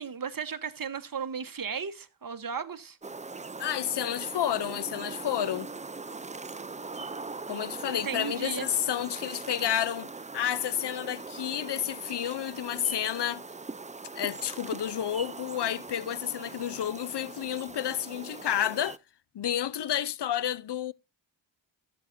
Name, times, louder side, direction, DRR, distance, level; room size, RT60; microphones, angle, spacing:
voice 1, 0.0-3.0 7.9-8.7, right 6 dB, 45° right, 1.1 m, -35 dB
sound 1, 3.0-19.0, right 3 dB, 15° right, 0.4 m, -41 dB
voice 2, 3.6-5.7 7.5-13.4 14.2-19.0 19.3-20.9, left 10 dB, 60° left, 0.6 m, -30 dB
13.5 x 8.2 x 2.6 m
cardioid pair, 45°, 48 cm